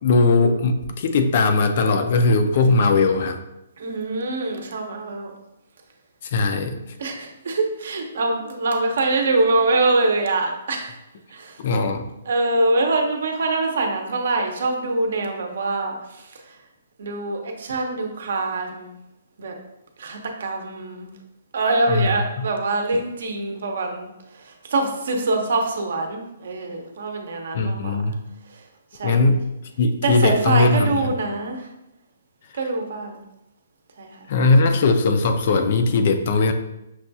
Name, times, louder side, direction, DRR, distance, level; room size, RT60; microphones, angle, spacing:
voice 1, 0.0-3.4 6.2-6.8 11.6-12.0 21.9-22.2 27.5-28.1 29.0-29.4 29.8-31.0 34.3-36.5, left 3 dB, 40° left, 7 dB, 0.3 m, -19 dB
voice 2, 3.8-5.3 7.0-10.9 11.3-11.6 12.3-16.3 17.0-18.9 19.4-19.5 20.0-21.1 21.5-24.1 24.3-28.0 28.9-29.3 30.0-31.7 32.6-33.2 34.0-34.2, right 2 dB, 55° right, 3 dB, 0.6 m, -24 dB
5.9 x 2.2 x 2.7 m, 0.89 s
hypercardioid pair, 175°, 0 cm